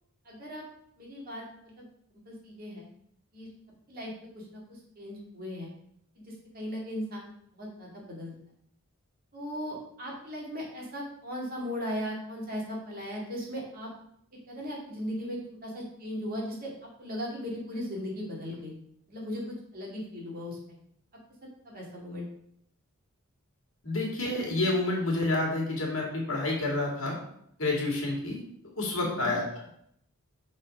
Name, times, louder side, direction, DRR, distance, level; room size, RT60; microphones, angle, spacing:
voice 1, 0.2-0.6 1.0-1.8 2.3-2.8 3.3-3.5 3.9-5.7 6.2-7.2 7.5-8.3 9.3-13.9 14.5-16.7 17.0-18.8 19.1-20.8 21.6-22.3 29.0-29.3, equal, 40° right, -3 dB, 2.1 m, -37 dB
voice 2, 23.8-27.2 27.6-28.4 28.8-29.5, left 2 dB, 65° left, -3 dB, 2.2 m, -29 dB
6.2 x 4.2 x 5.1 m, 0.70 s
head